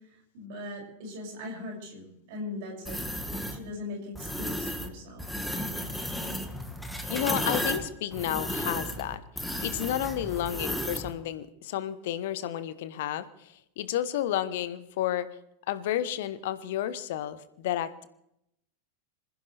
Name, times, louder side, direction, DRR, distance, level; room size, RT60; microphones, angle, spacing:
voice 1, 0.3-3.0 3.5-5.3, left 2 dB, 50° right, 1 dB, 6.7 m, -40 dB
sound 1, 2.9-3.6 4.2-4.9 5.2-11.1, equal, 5° left, 1.6 m, -33 dB
voice 2, 7.1-9.2 9.6-15.3 15.7-18.1, left 11 dB, 55° left, 14 dB, 1.1 m, -31 dB
26.5 x 15.0 x 3.4 m, 0.80 s
figure-of-eight pair, 90°, 0 cm